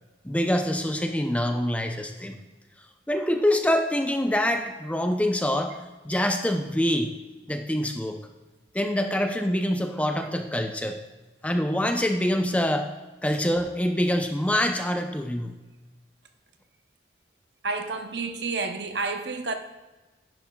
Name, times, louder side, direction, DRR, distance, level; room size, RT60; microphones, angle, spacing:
voice 1, 0.2-2.4 3.1-5.8 6.0-7.1 7.5-8.2 8.7-11.0 11.4-12.9 13.2-15.6, left 1 dB, 10° left, 0.5 m, -25 dB
voice 2, 17.6-19.6, right 3 dB, 65° right, 0.8 m, -30 dB
10.5 x 8.3 x 2.3 m
head